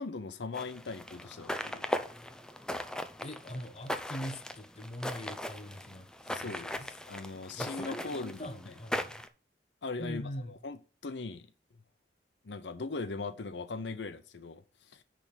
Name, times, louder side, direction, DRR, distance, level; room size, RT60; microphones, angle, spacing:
voice 1, 0.0-1.9 6.3-8.7 9.8-10.2 10.5-11.5 12.4-15.0, left 3 dB, 85° left, 0.7 m, -40 dB
sound 1, 0.5-9.3, left 1 dB, 5° left, 0.5 m, -39 dB
voice 2, 3.2-6.9 7.5-9.2 10.0-10.5, equal, 35° left, 1.0 m, -42 dB
10.5 x 3.5 x 5.7 m
head